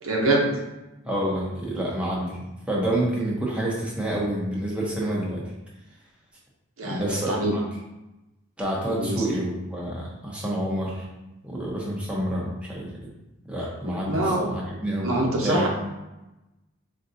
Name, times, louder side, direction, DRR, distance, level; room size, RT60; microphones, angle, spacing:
voice 1, 0.0-0.5 6.8-7.5 8.9-9.2 13.8-14.5 15.0-15.7, right 2 dB, 85° right, -1 dB, 0.7 m, -25 dB
voice 2, 1.0-5.4 6.8-7.6 8.6-11.1 11.4-12.9 13.5-15.7, right 1 dB, 5° right, -5 dB, 0.7 m, -28 dB
4.5 x 2.6 x 2.6 m, 1.0 s
head